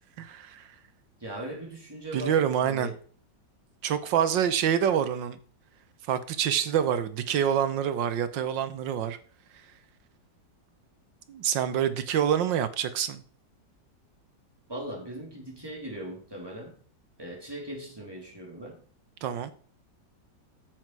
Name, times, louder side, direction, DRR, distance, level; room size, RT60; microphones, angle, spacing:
voice 1, 0.2-0.7 2.1-2.9 3.8-5.4 6.1-9.2 11.3-13.2 19.2-19.5, right 9 dB, 75° right, 12 dB, 1.6 m, -26 dB
voice 2, 1.2-3.0 14.7-16.8 17.2-18.8, right 1 dB, 10° right, -1 dB, 3.0 m, -39 dB
9.5 x 7.6 x 4.7 m, 0.43 s
omnidirectional pair, 2.0 m